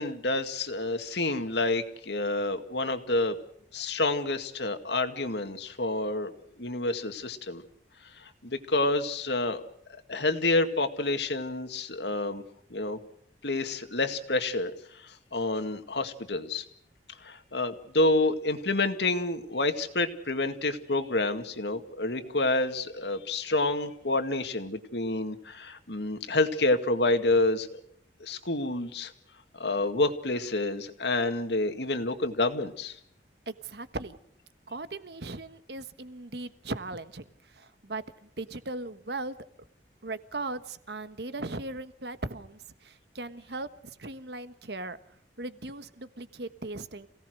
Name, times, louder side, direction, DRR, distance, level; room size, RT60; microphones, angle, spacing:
voice 1, 0.0-3.4 3.7-6.3 6.6-7.6 8.2-9.6 10.1-12.4 12.7-13.0 13.4-16.6 17.2-27.8 28.2-29.1 29.5-33.0, left 2 dB, 75° left, 7 dB, 2.1 m, -28 dB
voice 2, 33.5-34.2 34.7-39.3 40.0-45.0 45.4-47.1, right 2 dB, 70° right, 12 dB, 1.4 m, -38 dB
27.5 x 18.0 x 6.5 m, 0.68 s
head